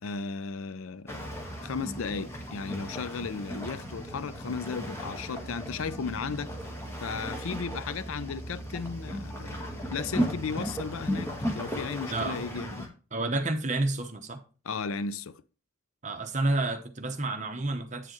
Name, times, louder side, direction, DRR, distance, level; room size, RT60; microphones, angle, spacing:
voice 1, 0.0-6.5 7.0-12.9 14.7-15.4, left 5 dB, 70° left, 0.5 m, -35 dB
sound 1, 1.1-12.9, equal, 10° left, 1.4 m, -36 dB
voice 2, 12.1-12.4 13.1-14.4 16.0-18.1, right 2 dB, 35° right, 0.8 m, -30 dB
8.3 x 7.6 x 3.0 m
head